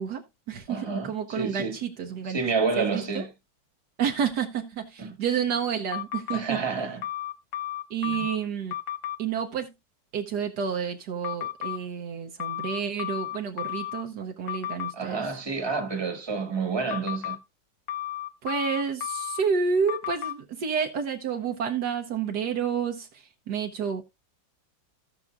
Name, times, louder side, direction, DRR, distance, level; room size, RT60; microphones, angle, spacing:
voice 1, 0.0-2.4 2.8-3.3 4.0-6.6 7.9-8.7 9.2-9.7 10.1-15.2 18.4-24.0, right 7 dB, 70° right, 1.4 m, -30 dB
voice 2, 0.7-1.8 2.2-3.3 5.0-5.1 6.3-7.0 8.0-8.2 14.9-17.4, right 4 dB, 15° right, 1.4 m, -29 dB
sound 1, 5.9-6.4 7.0-8.4 8.7-9.2 11.2-11.8 12.4-14.0 14.5-14.9 16.9-17.4 17.9-19.4 19.9-20.3, left 13 dB, 85° left, 1.4 m, -33 dB
16.0 x 6.1 x 2.3 m
omnidirectional pair, 2.0 m